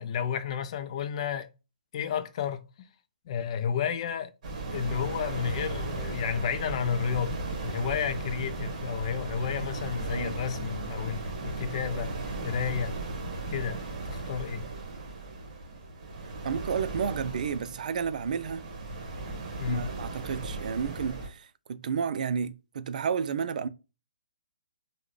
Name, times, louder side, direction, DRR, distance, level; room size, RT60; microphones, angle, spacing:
voice 1, 0.0-1.5 1.9-2.7 3.3-4.3 4.7-12.1 12.4-13.0 13.5-13.8 14.1-14.7 19.6-19.9, left 7 dB, 45° left, 0.4 m, -31 dB
sound 1, 4.4-21.3, right 2 dB, 45° right, 1.2 m, -36 dB
voice 2, 16.4-18.6 19.7-23.7, right 6 dB, 60° right, 0.3 m, -31 dB
3.7 x 2.1 x 3.1 m
hypercardioid pair, 150°, 5 cm